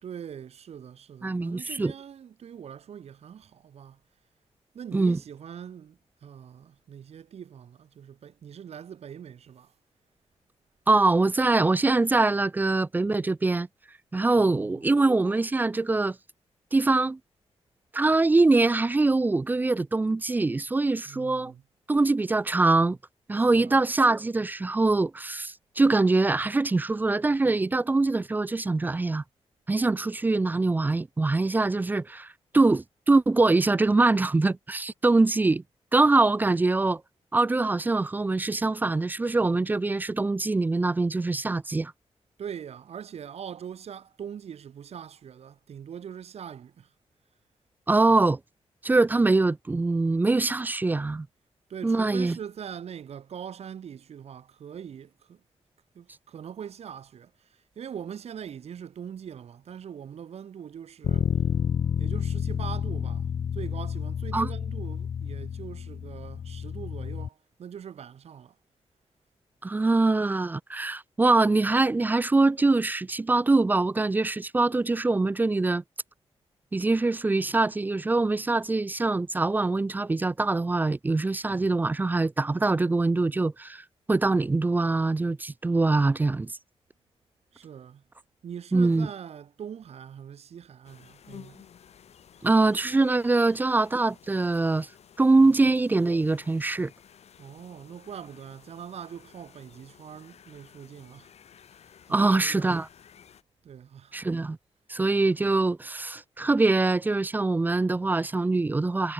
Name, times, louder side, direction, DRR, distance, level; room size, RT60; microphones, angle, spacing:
voice 1, 0.0-4.0 4.7-9.7 14.3-15.0 21.0-21.6 23.3-23.8 42.4-46.9 51.7-55.4 55.9-57.3 57.7-61.3 62.0-68.5 87.5-88.0 88.4-91.6 95.4-95.5 97.4-101.3 102.1-102.8 103.6-104.2, right 8 dB, 75° right, 3.1 m, -42 dB
voice 2, 1.2-1.9 4.9-5.2 10.9-13.7 14.1-16.2 16.7-17.2 17.9-21.5 21.9-23.0 23.3-29.2 29.7-32.3 32.5-35.6 35.9-37.0 37.3-41.9 47.9-48.4 48.8-51.3 51.8-52.4 64.3-64.5 69.6-75.8 76.7-86.5 88.7-89.1 92.4-94.9 95.2-96.9 102.1-102.9 104.1-104.6 104.9-109.1, right 3 dB, 15° right, 0.4 m, -23 dB
Bass guitar, 61.0-67.3, left 7 dB, 50° left, 0.6 m, -30 dB
sound 1, 90.8-103.4, left 8 dB, 80° left, 2.9 m, -54 dB
wide cardioid pair, 165°, 11 cm